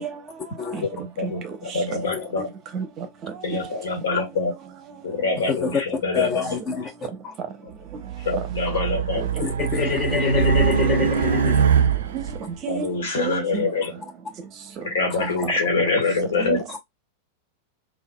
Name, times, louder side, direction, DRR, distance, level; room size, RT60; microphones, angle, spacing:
voice 1, 0.0-2.0 2.3-5.3 7.4-8.5 9.1-9.4 11.8-13.7 13.9-15.0 15.4-15.5 16.4-16.8, right 7 dB, 35° right, 0.7 m, -35 dB
voice 2, 0.8-2.5 3.4-4.5 5.0-6.6 7.6-7.7 8.2-9.3 12.7-13.9 14.8-16.6, left 3 dB, 60° left, 1.3 m, -25 dB
voice 3, 5.4-5.8 6.1-6.9 7.2-7.3 9.4-11.6 15.2-15.4 16.7-16.8, left 6 dB, 25° left, 0.9 m, -26 dB
Race car auto racing, 8.0-12.4, right 6 dB, 65° right, 0.4 m, -22 dB
3.5 x 2.2 x 2.2 m
figure-of-eight pair, 90°, 0 cm